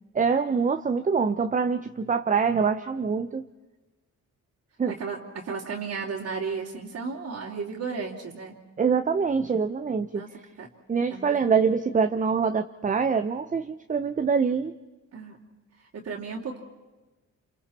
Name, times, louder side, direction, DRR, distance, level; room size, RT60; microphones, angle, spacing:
voice 1, 0.1-3.4 4.8-4.9 8.8-10.2 10.9-14.7, right 5 dB, 25° right, 8 dB, 0.8 m, -24 dB
voice 2, 4.9-8.5 10.1-10.3 10.6-10.7 11.1-11.4 15.1-15.4 15.9-16.6, right 5 dB, 55° right, -5 dB, 3.0 m, -34 dB
29.0 x 28.5 x 4.3 m, 1.2 s
cardioid pair, 130°, 30 cm